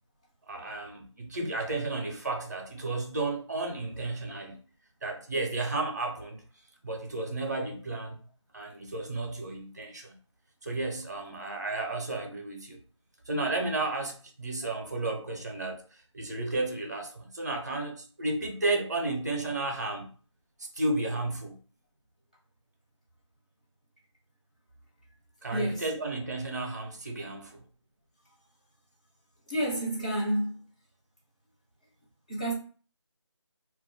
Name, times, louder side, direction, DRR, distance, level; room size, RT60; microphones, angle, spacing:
voice 1, 0.5-4.6 5.0-6.4 6.8-8.2 8.5-10.2 10.6-12.8 13.3-20.1 20.7-21.6 25.4-27.6, right 2 dB, 35° right, 0.6 m, -33 dB
voice 2, 25.5-25.8 29.5-30.6 32.3-32.5, right 1 dB, 15° left, 0.5 m, -29 dB
2.2 x 2.0 x 3.7 m
figure-of-eight pair, 165°, 16 cm